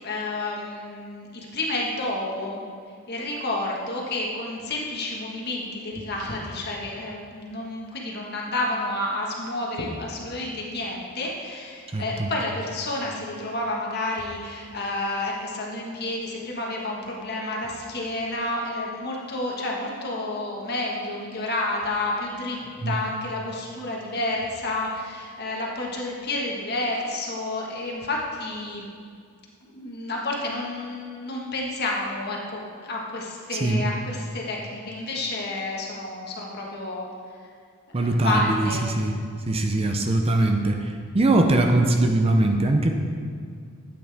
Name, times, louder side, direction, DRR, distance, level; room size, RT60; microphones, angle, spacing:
voice 1, 0.0-2.6 3.1-22.6 22.8-28.9 29.7-37.1 37.9-38.8, left 2 dB, 45° left, -2 dB, 1.6 m, -30 dB
voice 2, 11.9-12.3 22.8-23.0 33.5-33.8 37.9-39.2 39.5-43.0, right 2 dB, 25° right, 4 dB, 0.6 m, -22 dB
12.5 x 8.7 x 3.5 m, 2.2 s
head